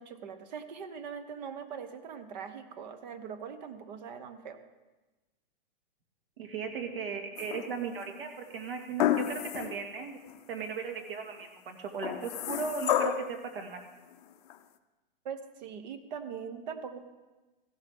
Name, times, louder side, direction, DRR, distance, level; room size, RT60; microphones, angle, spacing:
voice 1, 0.0-4.6 15.2-17.0, right 7 dB, 50° right, 9 dB, 1.1 m, -41 dB
voice 2, 6.4-10.2 10.5-13.8, right 5 dB, 75° right, 4 dB, 2.1 m, -37 dB
sound 1, 7.4-8.0 9.0-9.8 10.3-10.4 12.0-13.4 14.5-14.6, left 11 dB, 45° left, 0.6 m, -30 dB
15.5 x 11.5 x 3.6 m, 1.2 s
hypercardioid pair, 155°, 29 cm